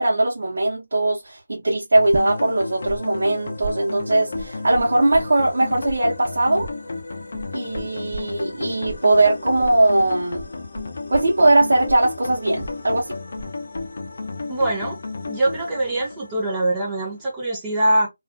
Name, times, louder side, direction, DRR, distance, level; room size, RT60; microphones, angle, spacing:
voice 1, 0.0-6.7 7.5-10.4 11.1-13.2, right 2 dB, 70° right, 0.8 m, -20 dB
sound 1, 2.0-17.0, left 3 dB, 55° left, 0.5 m, -33 dB
sound 2, 2.1-3.0 3.2-5.6 5.9-13.5 13.7-14.3, right 2 dB, 40° right, 0.9 m, -36 dB
voice 2, 14.5-15.0 15.3-18.1, right 1 dB, 15° right, 0.5 m, -23 dB
2.4 x 2.3 x 2.4 m
figure-of-eight pair, 165°, 0 cm